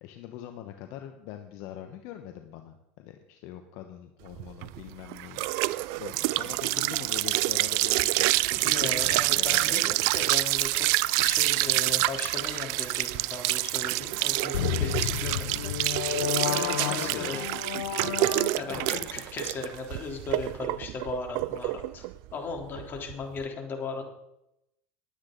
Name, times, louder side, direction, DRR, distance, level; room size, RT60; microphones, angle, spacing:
voice 1, 0.0-5.5 6.0-9.8 16.2-17.4 18.7-19.0, left 11 dB, 65° left, 6 dB, 1.1 m, -42 dB
sound 1, 4.4-23.4, right 20 dB, 70° right, 0.4 m, -27 dB
voice 2, 8.6-10.9 11.2-15.7 16.4-17.5 18.6-22.1 22.3-24.1, left 4 dB, 40° left, 1 dB, 3.5 m, -37 dB
sound 2, 14.5-19.0, left 12 dB, 90° left, 0.6 m, -31 dB
20.0 x 8.7 x 4.0 m, 0.84 s
supercardioid pair, 100°, 6 cm